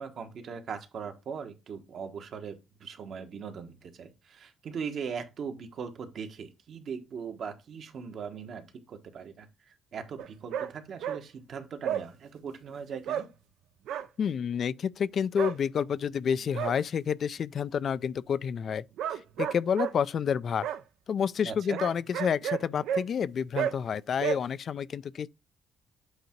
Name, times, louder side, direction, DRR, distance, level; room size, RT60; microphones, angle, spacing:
voice 1, 0.0-13.3 21.4-21.8, right 6 dB, 60° right, 1.1 m, -40 dB
sound 1, 10.2-10.7 11.0-11.2 11.8-12.0 13.1-13.3 13.9-14.1 15.4-15.6 16.3-16.8 19.0-19.9 20.6-20.8 21.8-23.0 23.6-23.7 24.2-24.4, right 9 dB, 85° right, 0.5 m, -31 dB
voice 2, 14.2-18.8 19.1-20.7 21.1-25.3, left 7 dB, 55° left, 0.3 m, -29 dB
7.9 x 2.7 x 4.4 m
cardioid pair, 90°, 0 cm